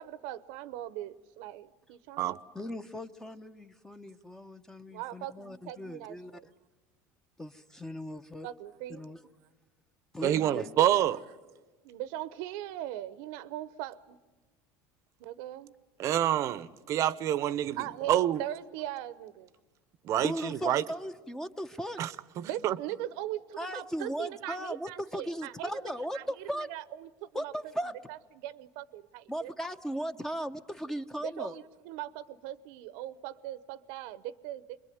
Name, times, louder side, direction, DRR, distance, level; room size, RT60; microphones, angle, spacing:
voice 1, 0.0-2.4 4.9-6.5 8.4-9.0 11.8-14.2 15.2-15.7 17.8-19.5 22.4-27.5 28.1-29.5 31.2-34.8, right 13 dB, 75° right, 0.9 m, -40 dB
voice 2, 2.5-6.3 7.4-8.5 8.9-9.2 10.1-10.7 20.2-22.0 23.6-26.7 27.3-27.9 29.3-31.6, equal, 5° left, 0.9 m, -37 dB
voice 3, 10.2-11.2 16.0-18.4 20.0-20.8 22.0-22.1 22.4-22.8, right 12 dB, 45° right, 0.8 m, -27 dB
26.0 x 22.0 x 9.3 m
cardioid pair, 135°, 7 cm